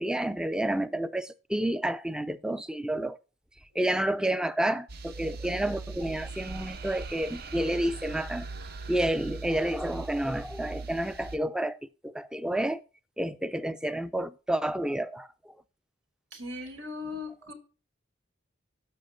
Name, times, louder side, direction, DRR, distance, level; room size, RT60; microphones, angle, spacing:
voice 1, 0.0-3.2 3.8-8.5 8.9-11.8 12.0-12.8 13.2-15.3, right 1 dB, 5° right, 0.4 m, -30 dB
sound 1, 4.9-11.4, right 3 dB, 55° right, 0.7 m, -40 dB
voice 2, 16.3-17.5, left 3 dB, 90° right, 2.9 m, -39 dB
7.6 x 5.7 x 5.1 m
head